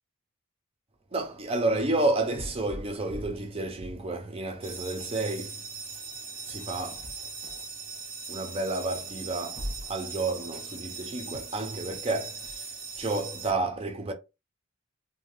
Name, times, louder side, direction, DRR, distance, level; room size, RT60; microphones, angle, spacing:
voice 1, 1.1-5.7 6.5-7.6 8.3-12.7 13.0-14.1, right 2 dB, 25° right, 0.5 m, -31 dB
sound 1, 4.6-13.5, right 4 dB, 85° right, 1.0 m, -40 dB
2.6 x 2.2 x 3.1 m
head